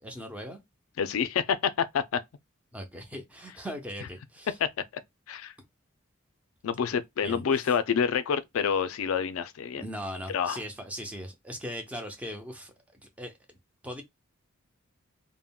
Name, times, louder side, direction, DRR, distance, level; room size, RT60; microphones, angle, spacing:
voice 1, 0.0-0.6 2.7-4.6 7.2-7.4 9.8-12.7 13.2-13.3 13.8-14.0, equal, 5° right, 0.6 m, -39 dB
voice 2, 1.0-2.2 4.6-4.7 5.3-5.5 6.6-9.8 10.3-10.6, left 7 dB, 90° left, 0.4 m, -27 dB
3.5 x 2.1 x 2.2 m
head